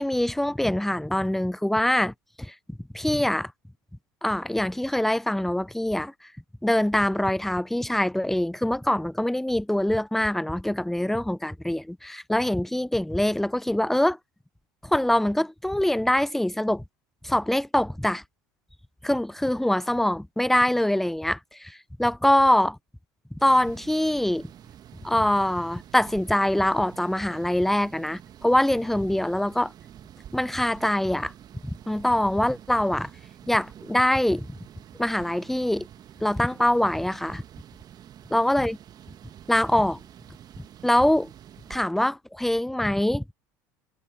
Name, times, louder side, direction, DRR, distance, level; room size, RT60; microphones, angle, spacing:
voice 1, 0.0-2.5 2.9-3.5 4.2-6.1 6.6-14.2 14.8-16.8 17.2-18.2 19.0-22.8 23.4-24.5 25.0-29.7 30.3-31.3 31.6-33.1 33.5-34.5 35.0-35.9 36.2-37.4 38.3-38.8 39.5-40.0 40.8-41.3 41.7-43.2, left 1 dB, 5° left, 0.5 m, -24 dB
sound 1, 23.4-41.8, right 10 dB, 45° right, 1.5 m, -48 dB
hypercardioid pair, 75°, 9 cm